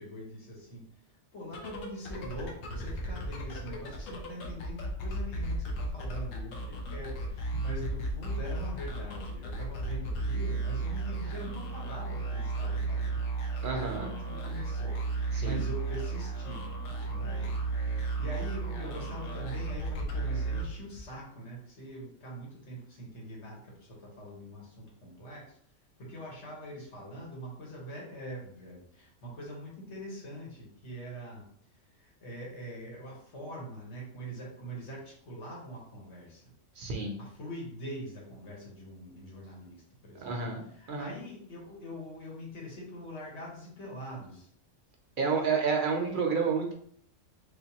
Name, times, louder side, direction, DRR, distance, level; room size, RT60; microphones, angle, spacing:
voice 1, 0.0-13.2 13.7-17.6 17.8-25.6 26.0-31.4 31.9-36.5 37.2-40.4 40.7-44.5, equal, 65° left, -3 dB, 1.5 m, -43 dB
sound 1, 1.4-21.2, right 3 dB, 90° left, 1.1 m, -34 dB
voice 2, 13.6-14.1 15.3-15.6 36.8-37.2 40.2-40.6 40.9-41.1 45.2-46.7, right 5 dB, 55° right, 2 dB, 0.6 m, -30 dB
3.4 x 2.8 x 2.8 m, 0.63 s
omnidirectional pair, 1.3 m